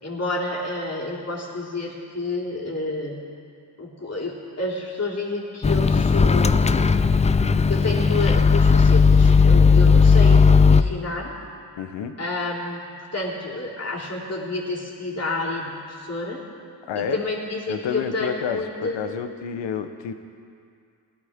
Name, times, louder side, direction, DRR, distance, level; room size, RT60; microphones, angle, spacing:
voice 1, 0.0-3.2 3.8-6.9 7.7-11.3 12.2-12.8 13.1-16.4 16.9-19.0, left 2 dB, 35° left, -4 dB, 3.1 m, -29 dB
Microwave oven, 5.6-10.8, left 5 dB, 15° left, 0.3 m, -16 dB
voice 2, 11.8-12.2 16.9-17.2 17.7-20.1, left 7 dB, 70° left, 8 dB, 1.0 m, -29 dB
18.0 x 11.5 x 3.6 m, 2.4 s
supercardioid pair, 55°, 45 cm